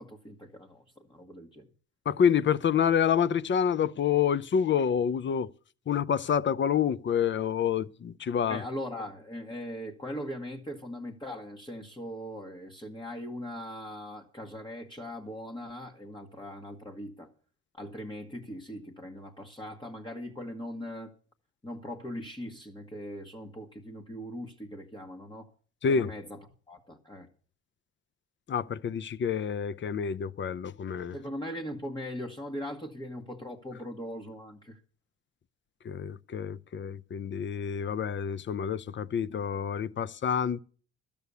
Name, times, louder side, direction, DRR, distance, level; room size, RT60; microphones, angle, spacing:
voice 1, 0.0-1.7 8.5-17.3 17.7-21.1 21.6-25.5 25.9-26.4 26.7-27.3 31.1-34.8, equal, 15° left, 1.4 m, -40 dB
voice 2, 2.1-5.5 5.9-8.6 25.8-26.1 28.5-31.2 35.8-40.6, left 7 dB, 40° left, 0.6 m, -28 dB
12.5 x 6.9 x 8.2 m
cardioid pair, 90°, 30 cm